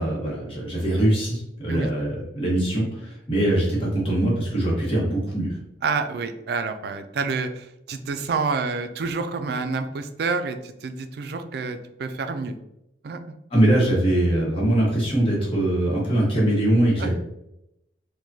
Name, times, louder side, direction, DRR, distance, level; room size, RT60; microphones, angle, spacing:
voice 1, 0.0-5.6 13.5-17.1, right 1 dB, 30° left, -4 dB, 1.0 m, -22 dB
voice 2, 5.8-12.5 13.0-13.4 17.0-17.1, right 4 dB, 60° right, 8 dB, 0.3 m, -28 dB
4.7 x 2.2 x 2.7 m, 0.85 s
head